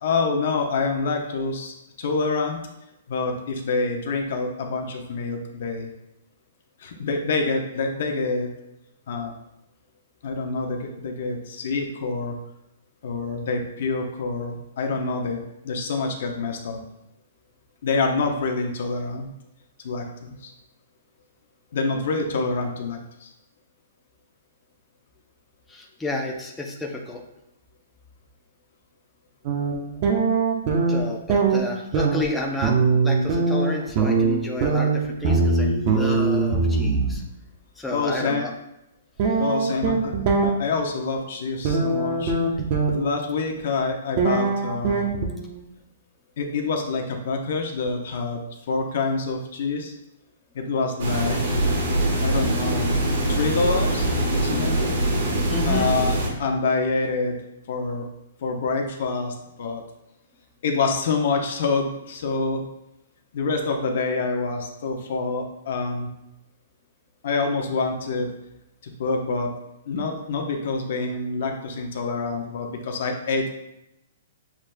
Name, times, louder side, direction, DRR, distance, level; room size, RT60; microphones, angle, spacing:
voice 1, 0.0-2.6 3.1-5.9 6.8-8.5 9.1-9.3 10.2-12.4 13.0-16.8 17.8-19.3 19.8-20.5 21.7-23.3 37.9-38.4 39.4-40.1 40.4-42.3 42.8-45.0 46.4-48.4 48.7-49.9 50.5-51.4 52.2-52.9 53.3-54.9 55.6-57.4 57.7-58.0 58.4-59.8 60.6-62.7 63.3-66.1 67.2-68.3 68.8-69.5 69.9-73.5, left 4 dB, 60° left, 3 dB, 0.8 m, -26 dB
voice 2, 25.7-27.2 30.9-32.8 33.0-37.2 37.8-38.5 39.3-39.4 55.5-55.9, left 2 dB, 5° left, -2 dB, 0.5 m, -31 dB
sound 1, 29.5-31.0 31.3-37.1 39.2-40.5 41.7-42.9 44.2-45.6, right 4 dB, 40° right, 0.8 m, -22 dB
sound 2, 51.0-56.3, right 1 dB, 70° right, 1.4 m, -23 dB
7.1 x 3.2 x 2.2 m, 0.86 s
hypercardioid pair, 150°, 0 cm